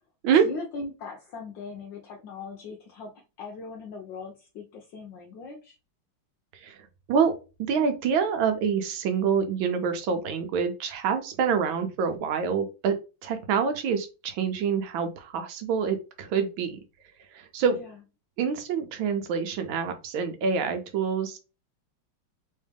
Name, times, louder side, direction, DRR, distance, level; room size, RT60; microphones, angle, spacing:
voice 1, 0.4-5.7 17.7-17.9, left 4 dB, 70° left, 1 dB, 1.3 m, -40 dB
voice 2, 7.6-12.9 13.2-16.8 17.3-17.8 18.4-21.4, right 6 dB, 80° right, 7 dB, 1.4 m, -26 dB
3.5 x 3.2 x 3.3 m, 0.30 s
omnidirectional pair, 2.2 m